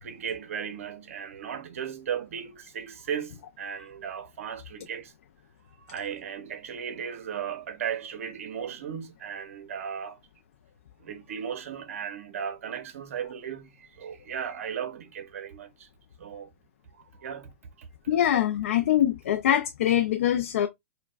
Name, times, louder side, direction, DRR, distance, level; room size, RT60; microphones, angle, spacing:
voice 1, 0.0-5.1 5.9-10.2 11.0-15.9 16.2-16.5 17.2-17.5 17.8-17.9, right 8 dB, 65° right, 0.8 m, -36 dB
voice 2, 18.1-20.7, left 11 dB, 65° left, 0.4 m, -23 dB
4.6 x 2.2 x 2.3 m
hypercardioid pair, 140°, 8 cm